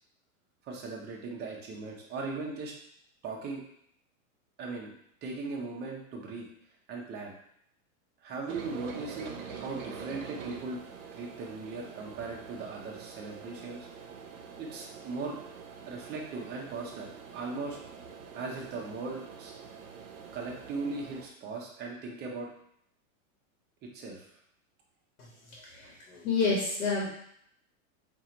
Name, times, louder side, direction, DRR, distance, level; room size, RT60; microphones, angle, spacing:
voice 1, 0.7-2.7 3.2-3.6 4.6-4.9 5.2-6.5 6.9-7.3 8.2-10.8 11.1-13.9 14.6-15.4 15.9-17.8 18.3-19.5 20.3-22.5 23.9-24.2, right 3 dB, 25° right, -1 dB, 0.7 m, -38 dB
sound 1, 8.5-21.3, right 6 dB, 65° right, 0.8 m, -45 dB
voice 2, 25.5-27.1, left 4 dB, 75° left, -3 dB, 1.4 m, -29 dB
4.6 x 2.6 x 2.9 m, 0.69 s
supercardioid pair, 150°, 43 cm